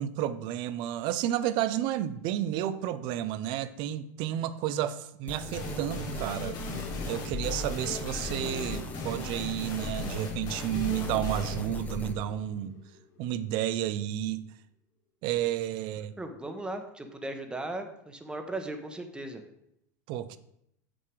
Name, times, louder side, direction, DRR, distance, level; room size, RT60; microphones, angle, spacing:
voice 1, 0.0-6.6 7.1-12.8 13.2-14.4 15.2-16.1 20.1-20.4, right 12 dB, 55° right, 0.6 m, -31 dB
sound 1, 5.3-12.1, left 3 dB, 15° left, 0.8 m, -38 dB
sound 2, 5.5-13.0, left 1 dB, 45° left, 2.0 m, -39 dB
voice 2, 16.2-19.4, right 2 dB, 10° right, 1.0 m, -37 dB
6.6 x 6.1 x 4.7 m
supercardioid pair, 125°, 10 cm